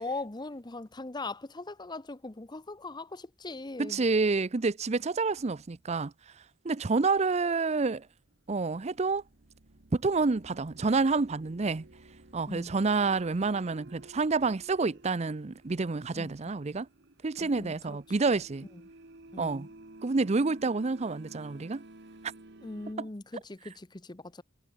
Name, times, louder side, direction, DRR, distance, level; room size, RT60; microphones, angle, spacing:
voice 1, 0.0-4.0 12.5-12.7 16.1-16.3 17.4-18.0 19.3-19.7 22.6-24.4, left 2 dB, 20° left, 0.8 m, -40 dB
voice 2, 3.8-6.1 6.6-8.1 8.5-9.2 9.9-11.9 12.3-16.9 17.2-18.7 19.4-19.7 20.0-21.8 23.0-23.1, right 4 dB, 35° right, 0.5 m, -28 dB
sound 1, 5.2-5.9 8.3-22.9, right 2 dB, 60° right, 1.7 m, -53 dB
head